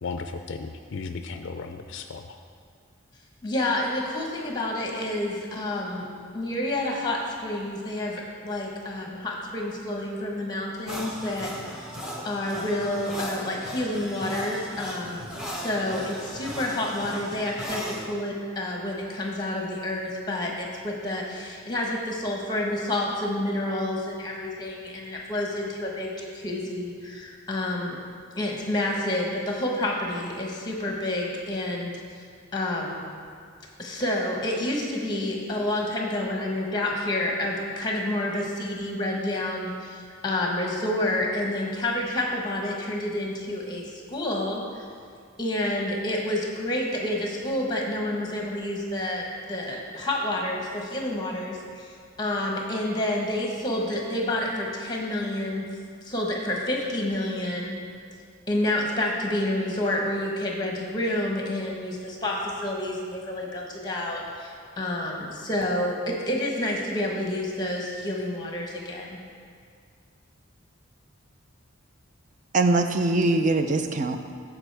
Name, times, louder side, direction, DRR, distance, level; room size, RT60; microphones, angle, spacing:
voice 1, 0.0-2.4, left 4 dB, 60° left, 7 dB, 0.4 m, -35 dB
voice 2, 3.4-6.1 6.3-11.9 12.2-28.0 28.4-32.0 32.5-33.1 33.8-44.8 45.4-51.9 52.2-55.7 56.0-57.7 58.5-69.2, left 1 dB, 20° left, -1 dB, 1.1 m, -29 dB
sound 1, 10.9-18.0, equal, 5° right, 0.8 m, -37 dB
voice 3, 72.5-74.4, right 2 dB, 35° right, 7 dB, 0.4 m, -23 dB
14.5 x 4.9 x 3.4 m, 2.2 s
head